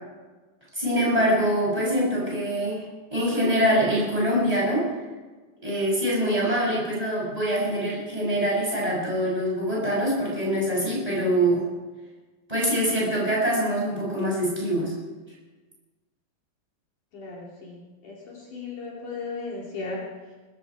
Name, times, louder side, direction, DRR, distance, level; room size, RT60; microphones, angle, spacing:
voice 1, 0.7-2.8 3.1-4.9 5.6-11.6 12.5-14.9, equal, 10° right, -4 dB, 6.3 m, -24 dB
voice 2, 17.1-20.4, left 3 dB, 55° left, -4 dB, 4.0 m, -36 dB
19.0 x 15.5 x 4.8 m, 1.3 s
omnidirectional pair, 4.4 m